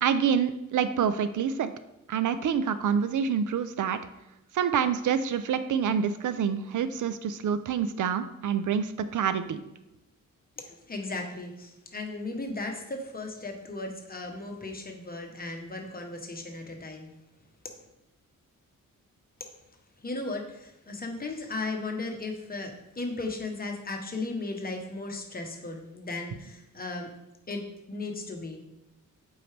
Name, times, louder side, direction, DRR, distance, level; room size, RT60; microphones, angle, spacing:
voice 1, 0.0-1.7 2.1-4.0 4.5-9.6, right 7 dB, 70° right, 11 dB, 0.5 m, -27 dB
voice 2, 10.6-17.1 20.0-27.1 27.5-28.6, left 2 dB, 30° left, 3 dB, 1.0 m, -36 dB
7.7 x 4.7 x 3.3 m, 0.92 s
wide cardioid pair, 140°, 32 cm